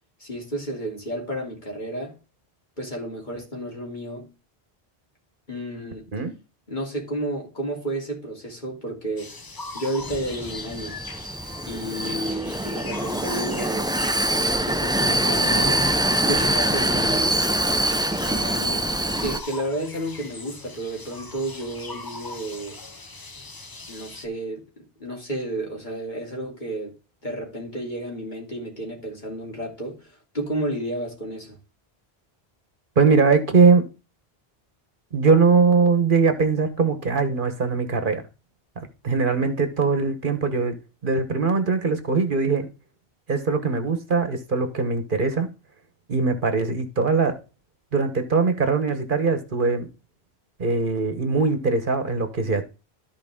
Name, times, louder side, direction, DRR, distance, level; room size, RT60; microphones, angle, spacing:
voice 1, 0.2-2.1 2.8-4.3 5.5-6.0 6.7-9.3 9.7-11.0 11.7-13.9 14.2-15.9 16.3-17.3 18.2-18.8 19.2-22.8 23.9-26.9 27.2-31.6, right 1 dB, 50° left, 3.3 m, -31 dB
sound 1, 9.2-24.3, left 3 dB, 25° left, 0.7 m, -40 dB
Vehicle, 10.0-19.4, right 1 dB, 5° right, 0.4 m, -24 dB
voice 2, 33.0-33.9 35.1-38.2 38.8-40.7 41.0-42.7 43.3-45.5 46.1-47.4 47.9-49.9 50.6-52.6, right 4 dB, 55° right, 1.3 m, -21 dB
13.5 x 4.7 x 3.6 m
omnidirectional pair, 1.0 m